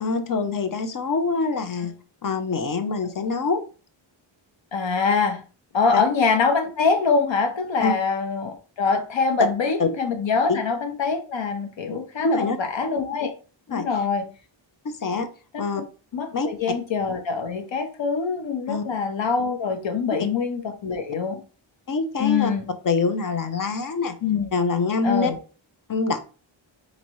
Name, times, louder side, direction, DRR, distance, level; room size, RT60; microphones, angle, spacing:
voice 1, 0.0-1.9 2.2-3.6 5.9-6.0 7.8-8.0 9.8-9.9 10.5-10.6 12.2-12.6 13.7-13.9 14.8-15.3 15.6-15.8 16.3-16.5 18.7-18.8 20.2-20.3 21.9-22.5 22.8-24.2 24.5-25.3 25.9-26.2, left 4 dB, 45° left, 0.6 m, -24 dB
voice 2, 4.7-5.4 5.7-13.3 13.7-14.2 15.5-15.6 16.1-21.4 22.2-22.7 24.2-24.5 25.0-25.4, left 5 dB, 65° left, 1.0 m, -24 dB
5.0 x 3.1 x 3.0 m
wide cardioid pair, 175°, 48 cm